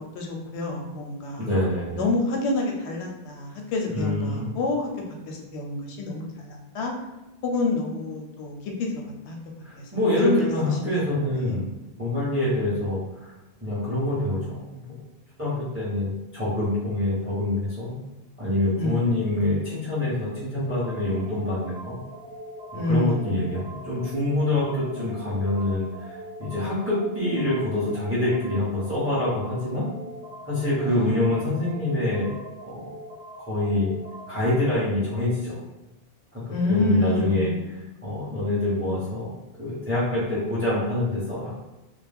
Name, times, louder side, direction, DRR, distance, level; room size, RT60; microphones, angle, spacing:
voice 1, 0.1-1.5 2.0-4.9 5.3-6.9 7.4-9.4 9.8-10.4 10.8-11.0 11.3-11.6 18.8-19.1 22.7-23.4 30.8-31.3 36.5-37.7, left 2 dB, 90° left, 0 dB, 0.9 m, -28 dB
voice 2, 1.4-2.0 3.9-4.5 9.6-11.7 12.0-13.3 13.6-14.8 15.4-17.9 18.4-22.0 22.7-29.9 30.5-32.3 32.6-32.8 33.4-33.9 34.3-35.6 36.3-36.4 36.7-39.3 39.6-41.5, left 1 dB, 15° right, -8 dB, 0.7 m, -26 dB
sound 1, 20.8-34.8, equal, 90° right, 1.0 m, -42 dB
2.3 x 2.0 x 3.3 m, 0.99 s
omnidirectional pair, 1.1 m